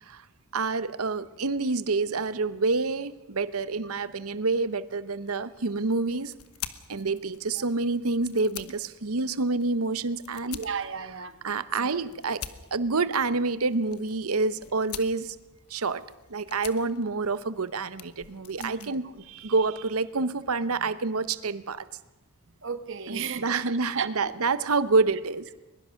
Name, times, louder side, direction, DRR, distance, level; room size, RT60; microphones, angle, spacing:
voice 1, 0.5-6.3 6.9-10.6 11.4-12.4 12.7-15.4 15.7-16.0 16.3-21.9 23.1-25.5, right 3 dB, 75° right, 15 dB, 0.9 m, -28 dB
sound 1, 5.5-20.1, left 10 dB, 80° left, 1.2 m, -46 dB
voice 2, 10.5-11.4 11.8-11.9 18.6-19.0 22.6-23.6 23.9-24.3, right 6 dB, 60° right, 10 dB, 1.4 m, -34 dB
21.5 x 21.5 x 6.4 m, 1.0 s
head